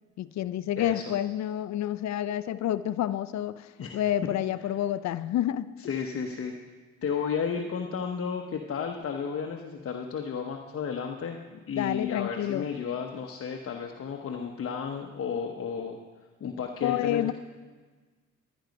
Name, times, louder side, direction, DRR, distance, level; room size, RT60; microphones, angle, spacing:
voice 1, 0.2-5.7 11.7-12.7 16.8-17.3, left 12 dB, 65° left, 14 dB, 0.5 m, -29 dB
voice 2, 5.9-6.5 7.0-11.4 11.7-16.0 16.4-17.3, left 6 dB, 50° left, 2 dB, 1.0 m, -33 dB
13.5 x 10.5 x 5.2 m, 1.4 s
cardioid pair, 90°, 30 cm